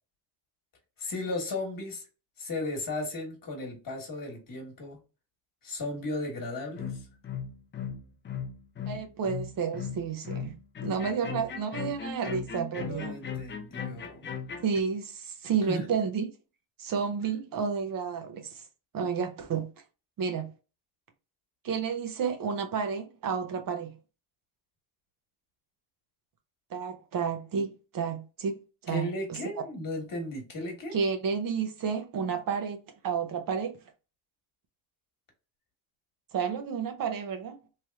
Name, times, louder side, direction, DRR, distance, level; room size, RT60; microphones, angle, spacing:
voice 1, 1.0-2.0 2.4-5.0 5.6-7.0 12.8-14.3 15.6-15.9 28.9-31.0, left 2 dB, 45° left, 1.3 m, -35 dB
sound 1, 6.8-14.8, left 7 dB, 25° left, 0.4 m, -37 dB
voice 2, 8.9-10.5 10.8-13.2 14.6-16.3 16.8-18.6 18.9-19.7 20.2-20.5 21.6-23.9 26.7-29.4 30.9-33.8 36.3-37.6, right 6 dB, 50° right, 0.6 m, -31 dB
3.2 x 2.8 x 2.3 m
cardioid pair, 95°, 45 cm